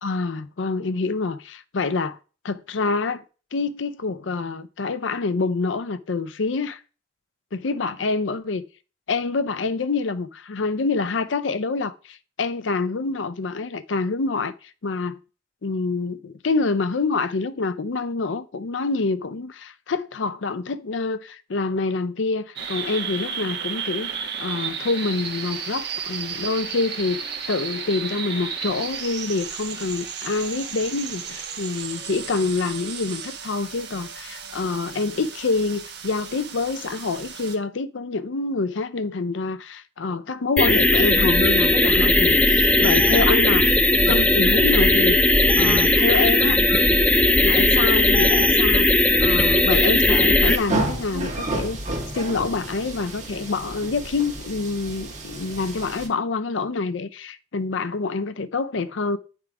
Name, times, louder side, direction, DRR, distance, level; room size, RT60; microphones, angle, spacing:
voice 1, 0.0-2.2 2.4-3.2 3.5-6.8 7.5-8.6 9.1-14.5 14.8-15.2 15.6-43.7 44.1-45.2 45.6-46.6 47.4-48.9 49.2-51.8 52.1-59.2, left 3 dB, 85° left, 0.6 m, -26 dB
sound 1, 22.6-37.6, right 7 dB, 60° right, 1.2 m, -33 dB
sound 2, 40.6-50.6, left 1 dB, 10° left, 0.6 m, -17 dB
sound 3, 50.5-56.1, right 2 dB, 40° right, 1.8 m, -31 dB
8.9 x 3.7 x 4.7 m
head